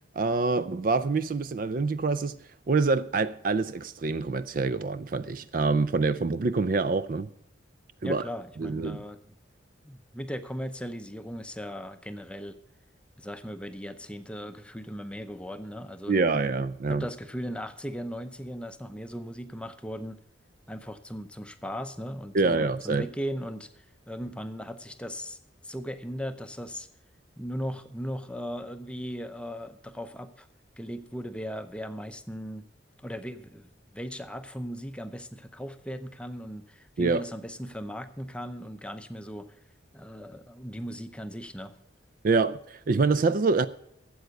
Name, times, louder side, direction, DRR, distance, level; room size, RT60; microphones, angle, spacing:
voice 1, 0.2-2.4 2.7-7.3 8.0-8.2 8.6-9.0 16.1-17.1 22.3-23.1 37.0-37.3 42.2-43.7, right 4 dB, 45° right, 0.4 m, -26 dB
voice 2, 8.0-9.4 9.8-12.6 13.2-16.2 16.9-20.2 20.7-25.4 25.6-26.9 27.4-30.5 30.8-32.7 33.0-39.6 39.9-41.7, equal, 5° left, 0.6 m, -38 dB
13.0 x 7.9 x 5.2 m
head